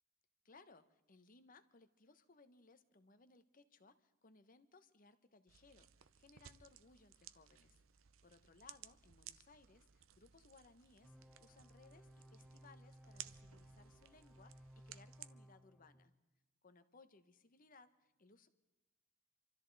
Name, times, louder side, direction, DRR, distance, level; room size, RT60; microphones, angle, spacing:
voice 1, 0.4-7.8 8.2-16.1 16.6-18.5, left 3 dB, 45° left, 11 dB, 1.0 m, -65 dB
sound 1, 5.5-15.3, right 11 dB, 90° right, 0.7 m, -59 dB
sound 2, 11.0-16.1, right 1 dB, ahead, 0.9 m, -61 dB
26.0 x 13.5 x 4.0 m, 1.1 s
head